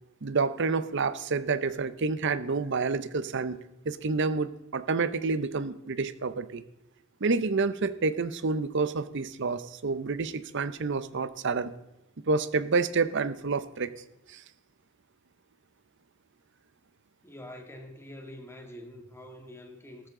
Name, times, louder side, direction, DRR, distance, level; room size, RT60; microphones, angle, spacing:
voice 1, 0.2-6.6 7.2-11.7 12.3-13.9 14.3-14.4, right 4 dB, 60° right, 14 dB, 0.7 m, -29 dB
voice 2, 17.2-20.1, left 1 dB, 10° left, 4 dB, 1.7 m, -45 dB
13.5 x 13.0 x 3.8 m, 0.94 s
head